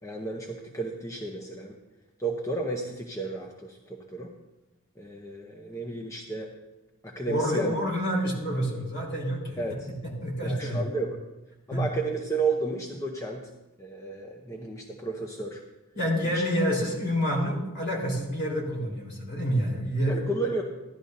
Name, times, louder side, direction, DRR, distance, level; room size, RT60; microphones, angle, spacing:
voice 1, 0.0-1.8 2.2-4.3 5.0-6.5 7.0-7.7 9.6-9.9 10.4-11.2 11.7-13.5 13.8-15.6 16.3-16.4 20.0-20.6, right 3 dB, 15° left, 0 dB, 0.8 m, -32 dB
voice 2, 7.3-9.6 10.0-10.8 11.7-11.8 15.9-20.2, equal, 55° left, -3 dB, 3.8 m, -28 dB
15.5 x 11.5 x 2.7 m, 1.0 s
head